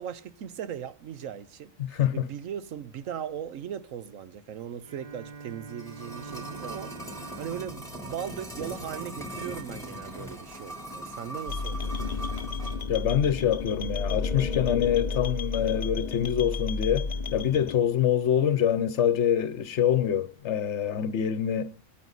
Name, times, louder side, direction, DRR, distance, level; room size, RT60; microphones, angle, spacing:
voice 1, 0.0-12.2, right 9 dB, 75° right, 1.2 m, -38 dB
voice 2, 1.9-2.3 12.9-21.7, left 9 dB, 60° left, 1.1 m, -25 dB
Bowed string instrument, 4.8-9.3, right 5 dB, 35° right, 0.7 m, -45 dB
sound 1, 5.5-12.9 13.2-13.3, right 1 dB, ahead, 3.5 m, -40 dB
sound 2, 11.5-17.8, left 4 dB, 40° left, 0.7 m, -32 dB
21.5 x 9.3 x 4.0 m
omnidirectional pair, 1.4 m